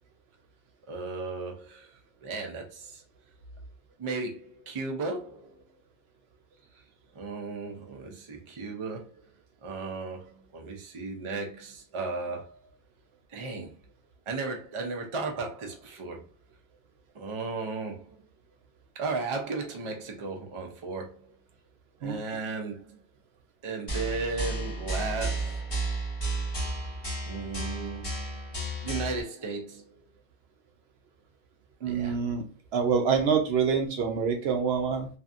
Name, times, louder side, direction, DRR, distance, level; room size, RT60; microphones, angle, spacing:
voice 1, 0.9-3.0 4.0-5.6 7.1-9.3 9.6-12.7 13.3-13.7 14.3-16.2 17.1-18.3 18.9-21.3 22.0-23.0 23.6-25.7 27.3-28.3 28.8-30.0 31.8-32.2, right 3 dB, 40° right, 0.5 m, -35 dB
sound 1, 23.9-29.2, right 2 dB, 25° left, 1.1 m, -32 dB
voice 2, 31.8-32.4 32.7-35.1, right 6 dB, 75° right, 0.8 m, -26 dB
2.6 x 2.5 x 2.3 m
omnidirectional pair, 1.1 m